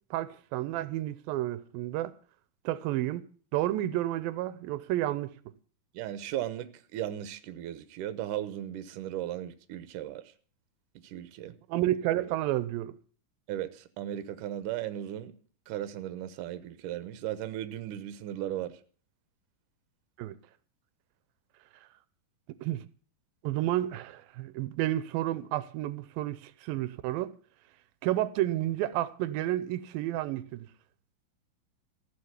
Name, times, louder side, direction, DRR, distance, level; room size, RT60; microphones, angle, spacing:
voice 1, 0.1-2.1 2.7-3.2 3.5-5.3 11.7-12.9 20.2-20.4 22.6-22.9 23.4-27.3 28.0-30.7, right 14 dB, 90° right, 2.5 m, -31 dB
voice 2, 5.9-10.2 11.0-11.6 13.5-15.3 15.7-18.8, right 12 dB, 75° right, 2.4 m, -36 dB
15.0 x 7.4 x 8.1 m
omnidirectional pair, 4.0 m